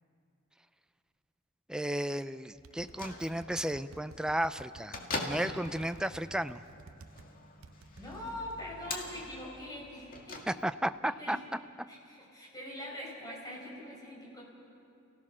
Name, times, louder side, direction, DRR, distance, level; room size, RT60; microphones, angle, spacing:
voice 1, 1.7-6.6 10.5-11.4, right 1 dB, 5° right, 11 dB, 0.4 m, -33 dB
sound 1, 2.6-7.3 7.6-8.4, right 4 dB, 70° right, 0.6 m, -53 dB
Bell / Microwave oven, 2.7-11.0, left 3 dB, 45° left, 2.1 m, -44 dB
voice 2, 8.0-10.4 11.2-11.4 11.9-14.4, left 1 dB, 20° left, -3 dB, 5.1 m, -43 dB
29.5 x 16.5 x 6.2 m, 2.6 s
head